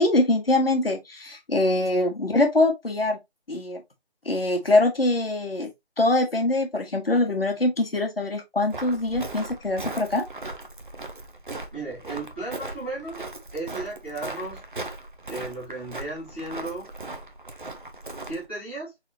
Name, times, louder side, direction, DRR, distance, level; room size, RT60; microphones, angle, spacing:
voice 1, 0.0-3.2 3.5-3.8 4.2-5.7 6.0-10.3, left 2 dB, 60° left, 1.6 m, -23 dB
Walk footsteps, 8.7-18.5, right 2 dB, 50° right, 0.8 m, -38 dB
voice 2, 11.7-13.2 13.5-14.6 15.3-16.9 18.3-18.9, right 2 dB, 10° right, 1.1 m, -34 dB
4.2 x 4.0 x 3.0 m
figure-of-eight pair, 170°, 33 cm